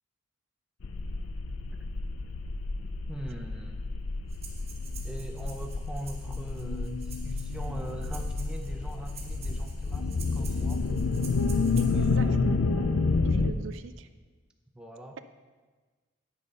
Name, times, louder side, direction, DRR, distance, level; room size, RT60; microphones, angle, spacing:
sound 1, 0.8-13.5, left 3 dB, 85° left, 0.6 m, -29 dB
voice 1, 3.1-3.8 5.0-10.9 11.9-12.7 14.7-15.2, right 1 dB, 5° right, 3 dB, 0.7 m, -42 dB
Breathing, 4.3-12.1, right 6 dB, 30° right, 1.4 m, -49 dB
voice 2, 11.8-12.4 12.8-12.9 13.2-14.1, right 4 dB, 60° right, 11 dB, 0.4 m, -41 dB
9.8 x 6.8 x 5.4 m, 1.4 s
head